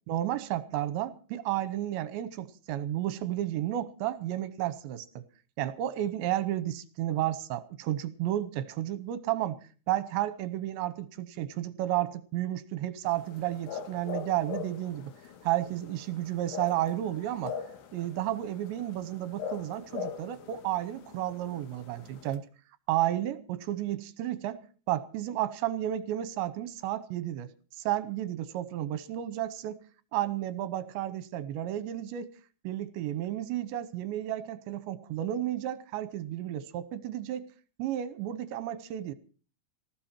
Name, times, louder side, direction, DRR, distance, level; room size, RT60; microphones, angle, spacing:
voice 1, 0.1-5.2 5.6-9.6 9.9-15.1 15.4-17.5 17.9-22.4 22.9-24.6 24.9-27.5 27.8-29.8 30.1-32.3 32.6-37.5 37.8-39.1, right 13 dB, 75° right, 2.9 m, -32 dB
sound 1, 13.1-22.4, left 7 dB, 85° left, 4.4 m, -42 dB
19.0 x 15.5 x 4.4 m
omnidirectional pair, 5.7 m